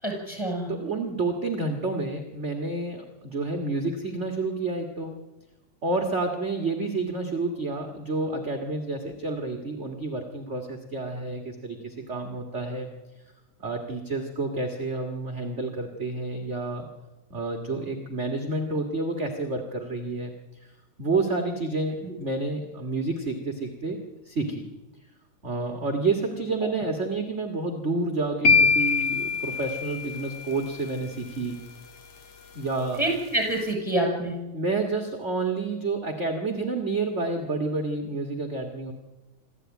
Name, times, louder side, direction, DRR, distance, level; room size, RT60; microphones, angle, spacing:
voice 1, 0.0-0.7 22.0-22.1 33.0-34.4, right 1 dB, 10° left, 2 dB, 7.0 m, -27 dB
voice 2, 0.7-5.2 5.8-12.9 13.6-16.9 17.3-20.3 20.6-20.7 21.0-24.6 25.4-31.6 32.5-33.0 34.5-38.9, right 3 dB, 30° right, 4 dB, 1.7 m, -29 dB
sound 1, 28.5-30.6, left 4 dB, 55° left, 3.1 m, -23 dB
26.0 x 14.0 x 9.2 m, 1.1 s
omnidirectional pair, 3.4 m